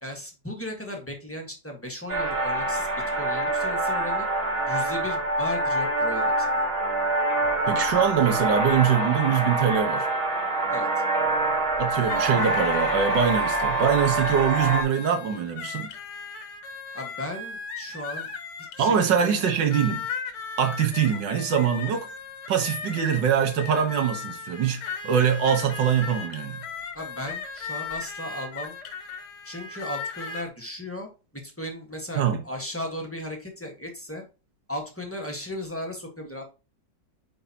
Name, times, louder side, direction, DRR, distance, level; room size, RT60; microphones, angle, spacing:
voice 1, 0.0-2.9 3.2-4.3 4.7-6.7 10.7-10.9 16.9-18.3 18.8-19.4 26.9-28.8 29.4-31.1 31.4-34.2 34.7-36.4, left 1 dB, 10° left, 1.2 m, -36 dB
sound 1, 2.1-14.8, right 2 dB, 35° right, 1.4 m, -25 dB
voice 2, 7.7-10.1 11.8-15.9 18.8-20.0 20.6-22.1 22.5-26.6 32.2-32.4, right 7 dB, 80° right, 1.8 m, -23 dB
sound 2, 12.0-30.5, left 5 dB, 75° left, 1.5 m, -37 dB
9.0 x 4.2 x 2.8 m
omnidirectional pair, 1.9 m